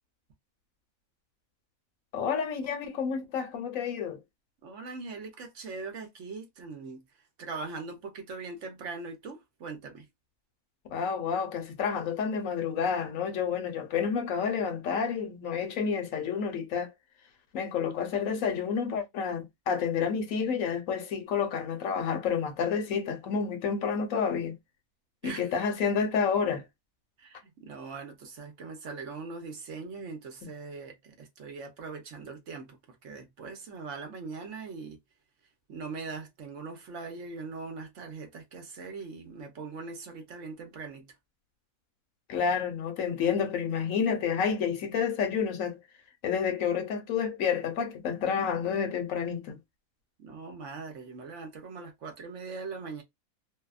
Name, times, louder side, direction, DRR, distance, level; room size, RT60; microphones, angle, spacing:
voice 1, 2.1-4.2 10.9-16.9 17.5-24.5 25.2-26.6 42.3-45.8 46.2-49.6, left 6 dB, 70° left, 1.0 m, -29 dB
voice 2, 4.6-7.0 7.4-10.1 25.2-25.5 27.2-35.0 35.7-41.1 50.2-53.0, right 4 dB, 60° right, 1.0 m, -41 dB
2.7 x 2.1 x 2.3 m
omnidirectional pair, 1.5 m